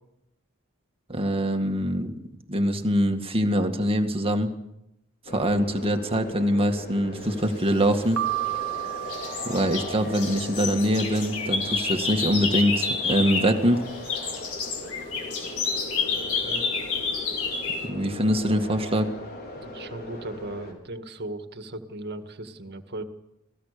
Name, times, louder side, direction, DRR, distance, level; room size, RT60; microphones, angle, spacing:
voice 1, 1.1-2.1 2.5-4.5 5.3-8.2 9.4-13.8 17.8-19.1, equal, 25° right, 5 dB, 1.9 m, -24 dB
sound 1, 5.3-20.7, left 1 dB, 50° left, 4.9 m, -39 dB
sound 2, 8.0-8.8 9.1-13.6 13.9-17.9, left 4 dB, 85° left, 5.4 m, -29 dB
Piano, 8.2-10.3, right 16 dB, 75° right, 1.3 m, -31 dB
voice 2, 16.2-16.7 19.6-23.0, right 1 dB, 50° right, 7 dB, 2.0 m, -37 dB
28.0 x 18.5 x 6.8 m, 0.85 s
head